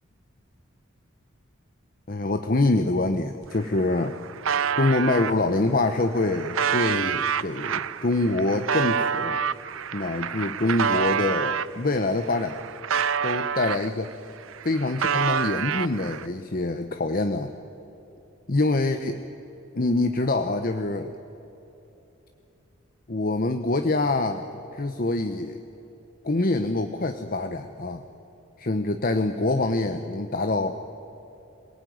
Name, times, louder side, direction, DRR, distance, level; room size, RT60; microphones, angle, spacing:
voice 1, 2.1-4.1 4.8-9.4 9.9-12.6 13.2-14.1 14.6-17.5 18.5-19.2 19.7-21.1 23.1-24.4 24.7-25.6 26.2-28.0 28.6-30.8, left 2 dB, 45° left, 7 dB, 0.9 m, -25 dB
sound 1, 3.4-3.5 3.8-5.3 5.9-11.7 12.2-14.1 14.4-16.3, right 7 dB, 75° right, 0.6 m, -27 dB
26.5 x 18.5 x 9.4 m, 3.0 s
head